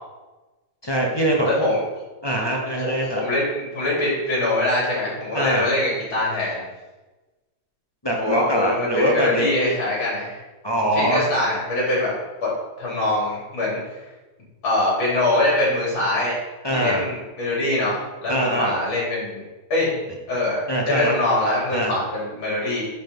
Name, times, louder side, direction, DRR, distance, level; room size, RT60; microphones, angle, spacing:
voice 1, 0.8-1.7 2.2-3.2 5.3-5.7 8.0-9.8 10.6-11.3 16.6-17.0 18.3-18.8 20.7-21.2 21.7-22.0, right 1 dB, 20° left, -2 dB, 0.6 m, -23 dB
voice 2, 1.4-1.8 2.8-6.6 8.2-10.4 10.9-12.1 12.8-13.8 14.6-16.4 16.7-19.4 19.7-19.9 20.3-22.8, left 1 dB, 70° left, -6 dB, 4.1 m, -23 dB
10.0 x 3.9 x 5.4 m, 1.2 s
omnidirectional pair, 2.2 m